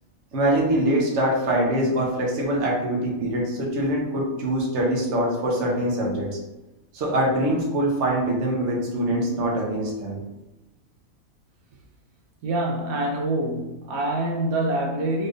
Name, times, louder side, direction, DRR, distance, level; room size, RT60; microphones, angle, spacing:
voice 1, 0.3-6.3 6.9-10.2, right 1 dB, 55° right, 1.2 m, -23 dB
voice 2, 12.4-15.3, right 1 dB, 90° right, 1.1 m, -25 dB
4.3 x 3.3 x 2.5 m
omnidirectional pair, 1.5 m